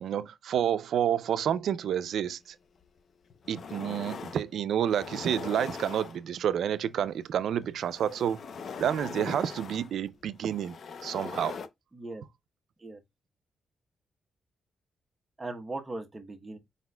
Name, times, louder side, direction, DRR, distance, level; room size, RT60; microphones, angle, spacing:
voice 1, 0.0-2.4 3.5-8.4 8.8-10.8 11.0-11.5, right 9 dB, 75° right, 0.4 m, -29 dB
sound 1, 2.8-2.9 3.3-4.5 4.8-6.5 7.6-11.7, left 5 dB, 55° left, 0.5 m, -41 dB
voice 2, 11.9-12.2 12.8-13.0 15.4-16.6, right 2 dB, 20° right, 0.9 m, -39 dB
4.9 x 4.0 x 2.2 m
cardioid pair, 115°, 0 cm